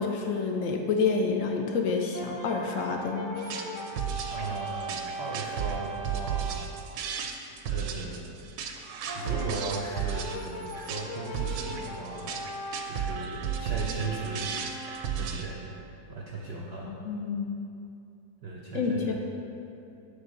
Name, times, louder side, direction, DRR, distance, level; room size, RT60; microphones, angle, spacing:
voice 1, 0.0-3.3 16.9-17.5 18.7-19.1, left 4 dB, 70° left, 3 dB, 0.8 m, -28 dB
Brass instrument, 2.1-6.7 9.1-15.4, right 1 dB, 50° left, 1.2 m, -39 dB
sound 1, 3.4-15.4, right 8 dB, 90° right, 1.3 m, -34 dB
voice 2, 4.3-6.7 7.1-7.4 7.7-8.4 9.1-12.4 12.8-14.5 15.2-15.8 16.1-16.9 18.4-19.1, right 3 dB, 65° right, -2 dB, 0.6 m, -37 dB
7.4 x 3.4 x 6.3 m, 2.7 s
omnidirectional pair, 1.8 m